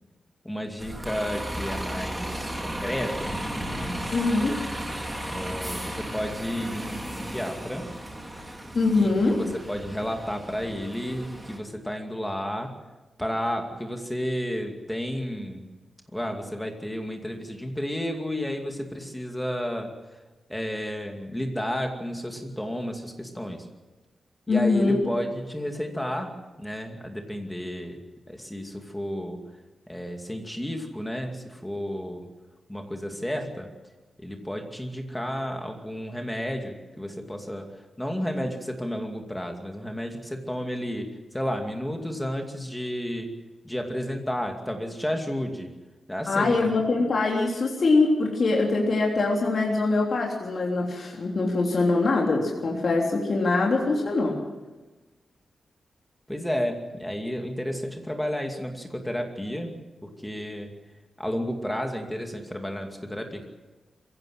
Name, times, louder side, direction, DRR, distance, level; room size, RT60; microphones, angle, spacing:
voice 1, 0.4-4.1 5.3-7.9 9.0-12.7 13.2-15.6 16.1-19.9 20.5-23.6 24.5-26.3 26.6-28.0 28.3-29.4 29.9-32.3 32.7-33.7 34.2-37.7 38.0-43.3 43.6-45.7 46.1-46.7 56.3-59.7 60.0-60.7 61.2-63.5, equal, 5° left, 3 dB, 2.5 m, -32 dB
Bus, 0.8-11.6, right 1 dB, 10° right, 2.9 m, -35 dB
voice 2, 4.1-4.6 8.8-9.4 24.5-25.0 46.3-54.4, left 3 dB, 45° left, -1 dB, 3.4 m, -23 dB
22.5 x 16.5 x 7.7 m, 1.2 s
wide cardioid pair, 150°, 0 cm